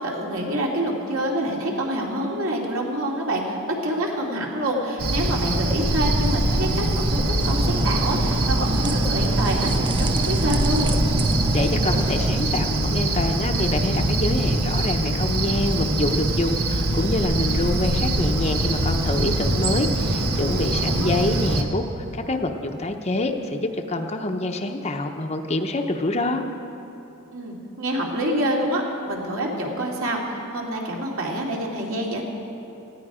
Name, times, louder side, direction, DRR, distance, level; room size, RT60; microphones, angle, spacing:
voice 1, 0.0-3.6 3.8-10.9 20.9-21.1 27.3-32.2, right 1 dB, 70° right, -1 dB, 2.6 m, -27 dB
Cricket, 5.0-21.6, right 1 dB, 85° right, 1.4 m, -23 dB
sound 1, 7.4-12.4, right 2 dB, 20° right, 0.5 m, -27 dB
voice 2, 11.5-26.4, left 2 dB, 30° left, 4 dB, 0.8 m, -26 dB
19.0 x 15.0 x 4.9 m, 2.9 s
head